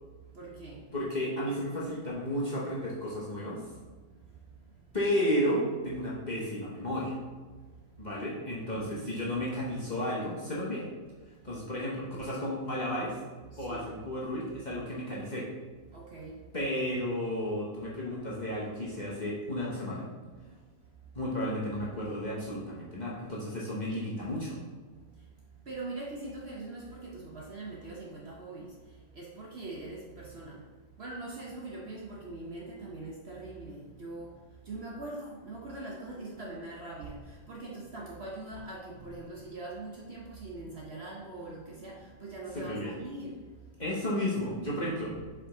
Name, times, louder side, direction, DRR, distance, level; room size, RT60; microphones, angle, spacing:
voice 1, 0.3-0.9 8.7-9.1 11.5-11.6 13.5-13.9 15.9-16.4 20.5-20.6 25.7-30.7 31.0-34.4 34.6-43.4 44.5-44.8, right 2 dB, 50° right, -3 dB, 0.9 m, -42 dB
voice 2, 0.9-3.6 4.9-7.2 8.0-10.8 11.4-13.2 13.6-15.5 16.5-20.1 21.1-24.6 42.5-42.9 43.8-45.1, equal, 30° left, -6 dB, 1.0 m, -33 dB
5.0 x 5.0 x 3.7 m, 1.4 s
omnidirectional pair, 1.7 m